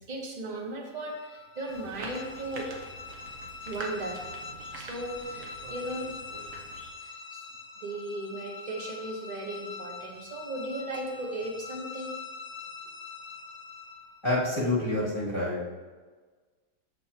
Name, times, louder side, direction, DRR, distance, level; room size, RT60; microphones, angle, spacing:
voice 1, 0.0-2.7 3.6-4.2 4.7-6.1 7.0-7.4 7.8-12.2, right 1 dB, 30° right, 1 dB, 1.0 m, -36 dB
sound 1, 0.9-14.3, left 5 dB, 50° left, 0.5 m, -44 dB
sound 2, 1.7-6.9, right 3 dB, 55° right, 1.2 m, -44 dB
voice 2, 14.2-15.6, left 2 dB, 15° left, -9 dB, 2.4 m, -27 dB
13.0 x 4.5 x 2.9 m, 1.4 s
omnidirectional pair, 1.9 m